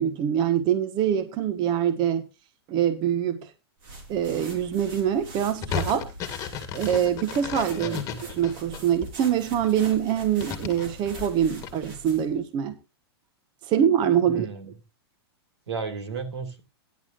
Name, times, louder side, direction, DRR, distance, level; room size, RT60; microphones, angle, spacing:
voice 1, 0.0-2.2 2.7-3.5 4.1-6.1 6.7-12.8 13.7-14.5, right 9 dB, 35° right, 1.3 m, -24 dB
sound 1, 3.8-12.4, right 2 dB, 50° right, 4.2 m, -43 dB
sound 2, 5.6-9.1 9.6-11.7, left 7 dB, 25° left, 1.9 m, -34 dB
voice 2, 7.8-8.3 14.3-14.7 15.7-16.6, right 5 dB, 90° right, 2.8 m, -34 dB
15.5 x 10.5 x 2.5 m
hypercardioid pair, 140°, 14 cm